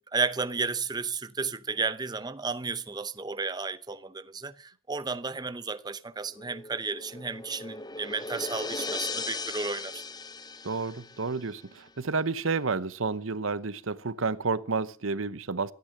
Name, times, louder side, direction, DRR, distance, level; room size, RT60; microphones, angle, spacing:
voice 1, 0.1-10.0, right 4 dB, 20° right, 0.7 m, -33 dB
sound 1, 6.3-11.5, left 3 dB, 20° left, 0.7 m, -38 dB
voice 2, 10.6-15.7, right 4 dB, 75° right, 0.9 m, -30 dB
17.0 x 12.5 x 6.5 m
head